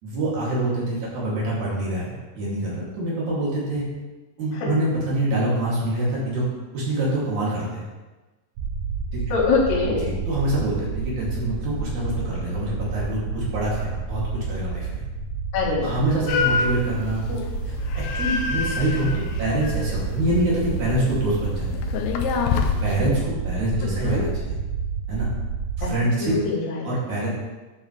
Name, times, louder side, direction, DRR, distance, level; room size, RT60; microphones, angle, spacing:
voice 1, 0.0-3.9 4.4-6.4 6.7-7.8 9.1-9.3 10.0-15.0 15.6-22.0 22.8-24.6 25.1-25.3 25.8-26.4 26.8-27.3, right 1 dB, 55° right, -6 dB, 3.8 m, -26 dB
sound 1, 8.6-25.9, right 5 dB, 90° right, 3.1 m, -30 dB
voice 2, 9.3-10.0 15.5-16.0 24.0-24.3 25.8-25.9 26.2-26.9, left 4 dB, 65° left, -6 dB, 3.0 m, -23 dB
sound 2, 16.3-23.1, left 5 dB, 90° left, 2.7 m, -28 dB
11.0 x 7.3 x 3.3 m, 1.2 s
omnidirectional pair, 4.4 m